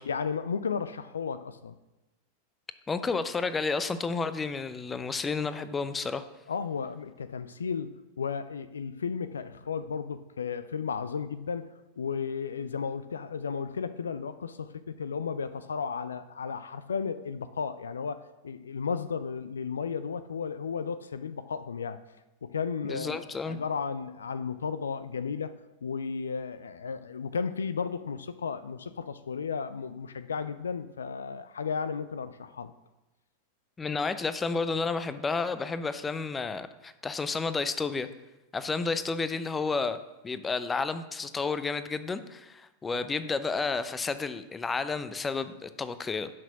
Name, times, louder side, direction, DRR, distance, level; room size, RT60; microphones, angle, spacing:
voice 1, 0.0-1.8 6.5-14.7 15.0-22.0 22.4-25.5 25.8-32.7 42.9-43.1, left 6 dB, 70° left, 13 dB, 0.5 m, -34 dB
voice 2, 2.9-6.2 22.8-23.6 33.8-38.1 38.5-40.0 40.2-46.3, left 4 dB, 15° left, 12 dB, 0.6 m, -31 dB
11.0 x 6.1 x 5.9 m, 1.0 s
figure-of-eight pair, 90°, 0 cm